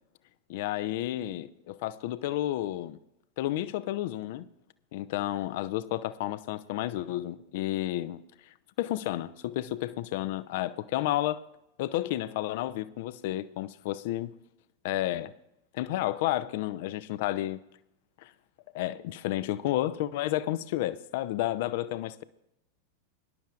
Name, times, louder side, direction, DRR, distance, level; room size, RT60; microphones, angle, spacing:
voice 1, 0.5-3.0 3.4-4.5 4.9-8.2 8.8-11.4 11.8-14.3 14.8-15.3 15.7-17.6 18.2-18.3 18.7-22.2, left 14 dB, 50° left, 0.5 m, -31 dB
23.5 x 11.5 x 2.5 m
figure-of-eight pair, 90°, 0 cm